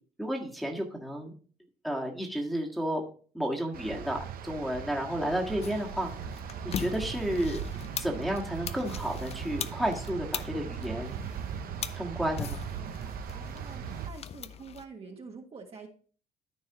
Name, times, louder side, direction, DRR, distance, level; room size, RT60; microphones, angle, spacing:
voice 1, 0.2-1.3 1.8-3.0 3.3-4.2 4.4-6.1 6.6-7.6 8.0-11.2 12.0-12.6, right 1 dB, ahead, -1 dB, 1.7 m, -32 dB
sound 1, 3.7-14.1, right 7 dB, 60° right, 0.9 m, -39 dB
sound 2, 5.6-14.9, left 8 dB, 40° left, 0.5 m, -41 dB
voice 2, 13.3-15.9, right 5 dB, 35° right, 1 dB, 1.6 m, -47 dB
13.5 x 4.7 x 2.9 m, 0.42 s
cardioid pair, 110°, 17 cm